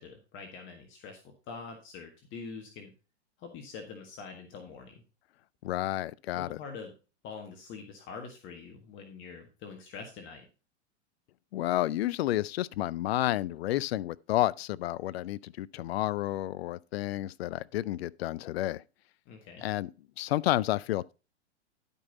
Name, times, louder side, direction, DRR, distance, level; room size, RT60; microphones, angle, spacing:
voice 1, 0.0-2.9 3.4-5.0 6.3-6.9 7.2-10.4 19.3-19.6, left 5 dB, 35° left, 1.6 m, -45 dB
voice 2, 5.6-6.6 11.5-18.8 19.6-19.9 20.2-21.1, left 15 dB, 65° left, 0.5 m, -30 dB
11.0 x 5.4 x 4.0 m
hypercardioid pair, 110°, 34 cm